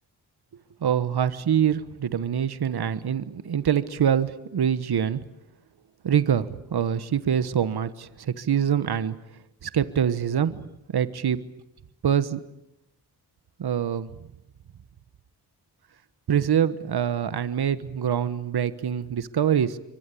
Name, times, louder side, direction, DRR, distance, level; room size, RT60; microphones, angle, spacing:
voice 1, 0.8-5.2 6.0-9.1 9.6-11.4 12.0-12.4 13.6-14.1 16.3-19.8, right 8 dB, 70° right, 14 dB, 1.3 m, -25 dB
28.0 x 24.5 x 8.5 m, 0.85 s
cardioid pair, 60°, 40 cm